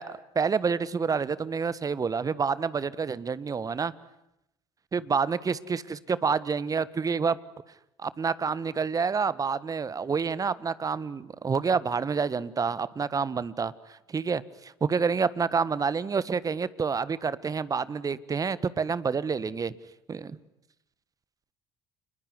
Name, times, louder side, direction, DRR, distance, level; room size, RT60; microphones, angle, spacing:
voice 1, 0.0-3.9 4.9-7.4 8.0-19.7 20.1-20.4, right 5 dB, 30° right, 17 dB, 1.5 m, -28 dB
28.5 x 21.0 x 9.8 m, 0.84 s
figure-of-eight pair, 55°, 12 cm